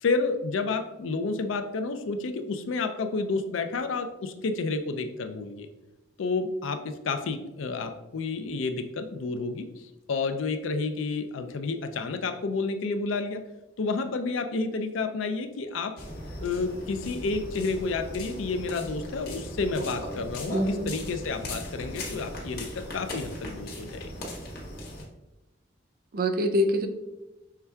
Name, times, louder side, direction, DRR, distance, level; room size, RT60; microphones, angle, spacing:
voice 1, 0.0-5.7 6.2-13.4 13.8-15.9 16.4-24.1, left 3 dB, 90° left, 8 dB, 0.4 m, -30 dB
sound 1, 16.0-25.0, left 1 dB, 50° left, 1.0 m, -38 dB
voice 2, 20.5-20.9 26.1-26.9, equal, 50° right, 7 dB, 0.4 m, -25 dB
5.7 x 3.4 x 2.3 m, 1.0 s
head